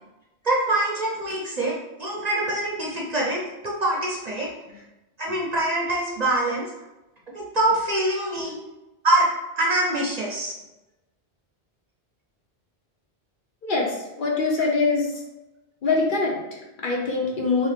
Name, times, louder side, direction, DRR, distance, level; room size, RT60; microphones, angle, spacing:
voice 1, 0.4-4.5 5.2-6.7 7.3-8.6 9.0-9.3 9.6-10.5, right 1 dB, 45° right, -3 dB, 0.6 m, -24 dB
voice 2, 13.6-15.2 15.8-17.7, left 3 dB, 55° left, -1 dB, 0.7 m, -24 dB
2.8 x 2.8 x 3.3 m, 1.0 s
omnidirectional pair, 1.1 m